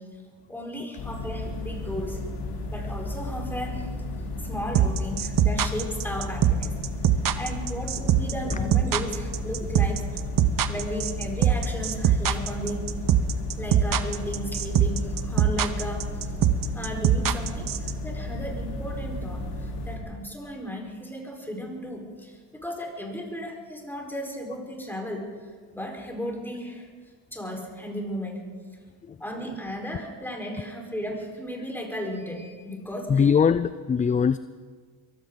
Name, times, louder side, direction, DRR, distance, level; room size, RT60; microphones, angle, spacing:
voice 1, 0.5-2.2 2.7-3.9 4.4-6.8 7.4-10.0 10.7-12.8 13.6-16.1 16.7-25.3 25.7-26.9 27.3-28.4 29.2-33.1, equal, 5° left, 0 dB, 4.6 m, -35 dB
sound 1, 1.0-20.0, left 1 dB, 70° left, 3.0 m, -33 dB
sound 2, 4.7-17.9, right 10 dB, 60° right, 1.0 m, -21 dB
voice 2, 33.1-34.4, left 6 dB, 20° left, 14 dB, 0.3 m, -21 dB
23.0 x 15.0 x 4.0 m, 1.5 s
cardioid pair, 90°, 38 cm